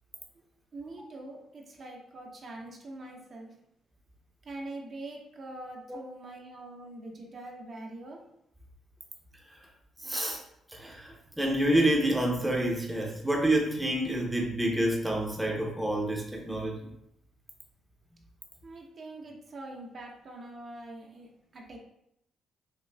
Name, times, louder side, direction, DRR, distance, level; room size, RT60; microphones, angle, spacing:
voice 1, 0.7-3.5 4.4-8.2 18.6-21.8, right 2 dB, 45° right, 0 dB, 0.7 m, -44 dB
voice 2, 10.0-10.4 10.7-16.9, right 1 dB, 5° right, -1 dB, 0.7 m, -28 dB
5.8 x 2.3 x 2.2 m, 0.77 s
cardioid pair, 90°, 0 cm